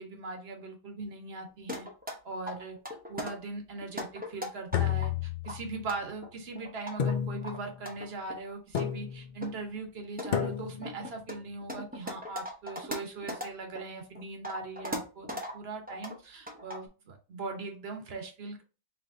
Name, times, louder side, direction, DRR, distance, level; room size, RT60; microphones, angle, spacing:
voice 1, 0.0-1.9 2.2-2.8 3.1-15.3 15.5-18.6, right 3 dB, 50° right, 4 dB, 1.0 m, -40 dB
sound 1, 1.7-2.1 2.5-3.3 3.8-5.1 5.4-7.1 7.4-8.4 8.8-8.9 9.4-9.5 10.0-13.8 14.2-15.5 15.9-16.2 16.5-16.9, left 1 dB, 10° right, 0.6 m, -38 dB
sound 2, 4.7-5.9 7.0-7.8 8.7-9.4 10.3-11.0, left 9 dB, 65° left, 0.4 m, -31 dB
4.5 x 3.3 x 2.5 m, 0.33 s
omnidirectional pair, 1.5 m